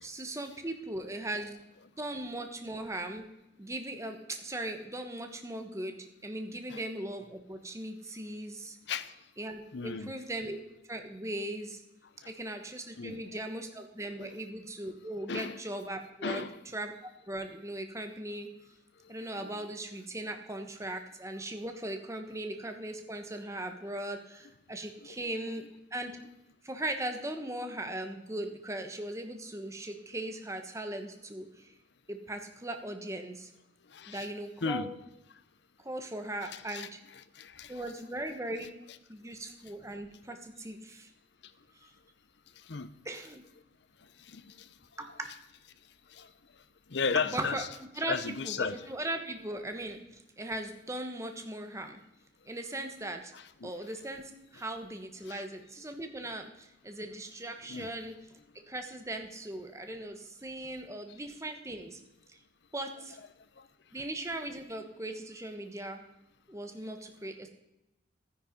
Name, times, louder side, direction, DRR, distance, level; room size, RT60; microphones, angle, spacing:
voice 1, 0.0-1.6 2.0-3.3 3.6-8.8 9.4-10.6 10.9-11.8 12.2-16.4 16.7-18.5 19.1-25.7 25.9-26.2 26.6-31.7 32.1-33.5 34.1-34.9 35.8-37.0 37.7-38.7 39.1-41.1 43.0-43.4 45.0-45.3 47.3-47.6 48.0-52.0 52.4-53.3 53.6-58.2 58.7-62.0 62.3-62.4 62.7-63.2 63.9-66.0 66.5-67.5, right 1 dB, 15° right, 6 dB, 1.2 m, -39 dB
voice 2, 9.7-10.2 13.0-13.2 14.2-14.4 15.3-15.6 16.2-16.6 19.4-19.6 25.0-25.2 33.9-34.3 34.6-34.9 36.4-37.8 42.7-42.9 44.3-44.7 46.1-46.3 46.9-47.7 48.1-48.8 53.3-53.8 55.3-55.4 57.7-57.9, left 5 dB, 65° left, 14 dB, 0.7 m, -35 dB
12.5 x 9.9 x 5.2 m, 0.88 s
head